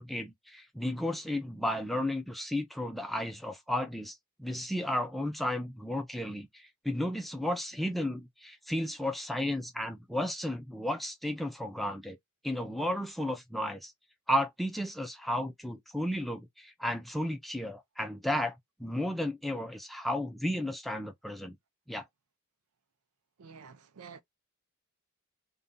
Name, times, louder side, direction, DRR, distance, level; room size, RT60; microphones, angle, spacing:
voice 1, 0.0-12.2 12.4-13.9 14.3-21.6 21.9-22.0, left 1 dB, ahead, 0.4 m, -33 dB
voice 2, 23.4-24.2, right 6 dB, 85° right, 0.5 m, -49 dB
2.6 x 2.2 x 3.6 m
head